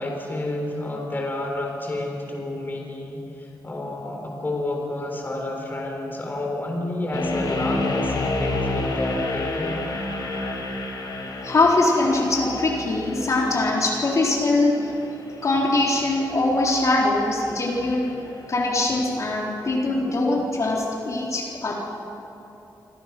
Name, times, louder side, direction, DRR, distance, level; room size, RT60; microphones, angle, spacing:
voice 1, 0.0-9.8, left 1 dB, 25° left, 1 dB, 3.9 m, -30 dB
sound 1, 7.1-18.2, left 2 dB, 70° left, 5.3 m, -31 dB
voice 2, 11.4-14.9 15.4-18.1 18.5-21.7, left 2 dB, 45° left, -2 dB, 3.9 m, -22 dB
29.0 x 25.5 x 6.1 m, 3.0 s
wide cardioid pair, 165°, 7 cm